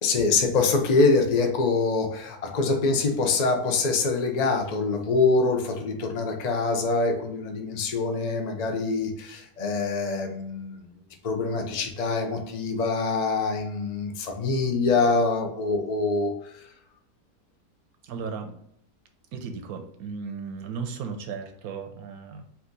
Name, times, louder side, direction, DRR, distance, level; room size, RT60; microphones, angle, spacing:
voice 1, 0.0-10.8 11.2-16.5, left 3 dB, 80° left, 3 dB, 0.3 m, -25 dB
voice 2, 18.0-18.5 19.3-22.5, right 5 dB, 70° right, 5 dB, 1.0 m, -35 dB
4.7 x 2.7 x 3.9 m, 0.72 s
omnidirectional pair, 1.9 m